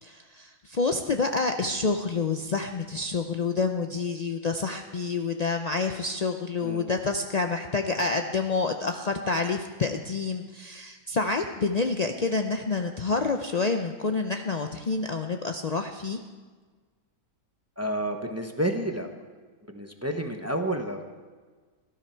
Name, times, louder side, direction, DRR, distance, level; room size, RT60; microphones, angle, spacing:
voice 1, 0.0-16.2, left 4 dB, 75° left, 5 dB, 0.3 m, -28 dB
voice 2, 17.8-19.1 19.7-21.0, right 1 dB, 15° right, 5 dB, 0.7 m, -30 dB
17.5 x 12.5 x 4.5 m, 1.4 s
omnidirectional pair, 1.6 m